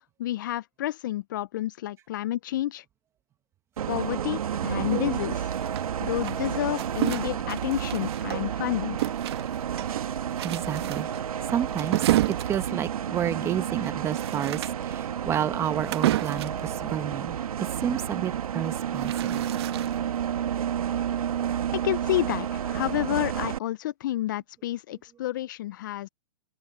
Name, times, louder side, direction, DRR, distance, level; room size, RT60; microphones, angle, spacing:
voice 1, 0.2-2.8 3.9-5.5 6.0-9.1 21.8-26.1, left 14 dB, 35° left, 0.4 m, -30 dB
Bus, 3.8-23.6, right 9 dB, 75° right, 1.9 m, -31 dB
sound 1, 5.5-8.6 9.0-16.7 18.5-20.2, right 15 dB, 45° right, 1.4 m, -31 dB
voice 2, 10.4-11.1 11.5-19.5, right 10 dB, 15° right, 1.2 m, -30 dB
hypercardioid pair, 155°, 19 cm